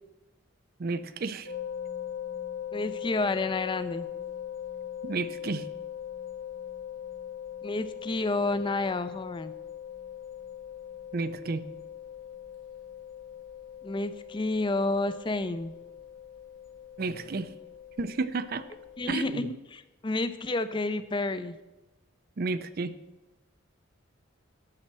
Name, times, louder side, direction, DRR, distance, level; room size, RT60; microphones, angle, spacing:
voice 1, 0.8-1.5 5.0-5.7 11.1-11.7 17.0-17.5 18.0-18.6 19.1-19.5 22.4-22.9, right 3 dB, 45° right, 14 dB, 0.5 m, -32 dB
sound 1, 1.4-19.3, left 9 dB, 70° left, 1.8 m, -41 dB
voice 2, 2.7-4.1 7.6-9.5 13.8-15.7 19.0-21.6, left 2 dB, 25° left, 12 dB, 0.4 m, -30 dB
11.5 x 4.3 x 7.4 m, 1.1 s
head